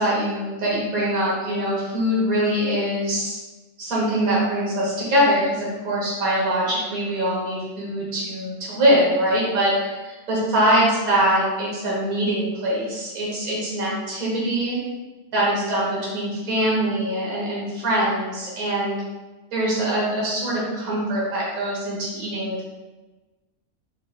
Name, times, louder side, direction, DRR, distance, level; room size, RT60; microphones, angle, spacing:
voice 1, 0.0-3.4 3.8-9.7 10.3-14.8 15.3-19.0 19.5-22.7, equal, 75° right, -6 dB, 1.7 m, -23 dB
5.2 x 3.8 x 2.4 m, 1.2 s
omnidirectional pair, 1.5 m